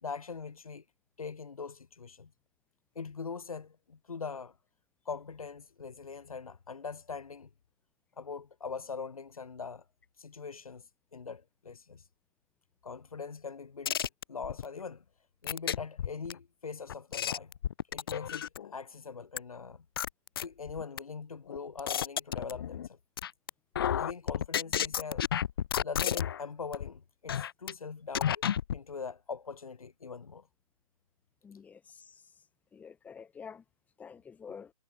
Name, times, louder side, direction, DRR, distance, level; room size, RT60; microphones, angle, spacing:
voice 1, 0.0-0.8 1.2-2.3 3.0-4.6 5.1-7.5 8.2-9.8 10.2-10.9 11.1-12.0 12.8-15.0 15.4-17.5 17.9-19.9 20.4-23.0 23.8-25.2 25.8-28.4 28.7-30.5, left 5 dB, 75° left, 3.6 m, -42 dB
sound 1, 13.9-14.6 15.5-16.3 16.9-18.7 19.4-19.5 20.0-21.0 21.5-22.9 23.2-23.5 23.8-26.4 26.7-26.9 27.3-27.7 28.1-28.8, left 9 dB, 40° left, 0.4 m, -31 dB
voice 2, 31.4-32.2 32.7-33.6 34.0-34.7, left 6 dB, 10° left, 6.5 m, -48 dB
hypercardioid pair, 155°, 18 cm